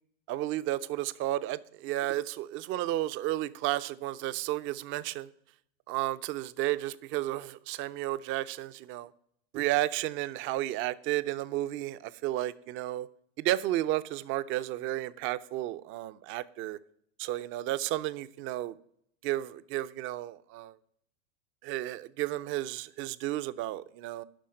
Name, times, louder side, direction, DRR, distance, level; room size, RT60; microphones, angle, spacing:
voice 1, 0.3-5.3 5.9-9.1 9.5-13.1 13.4-16.8 17.2-18.7 19.2-20.7 21.6-24.2, right 15 dB, 40° right, 0.5 m, -32 dB
11.5 x 4.2 x 6.4 m
supercardioid pair, 125°, 31 cm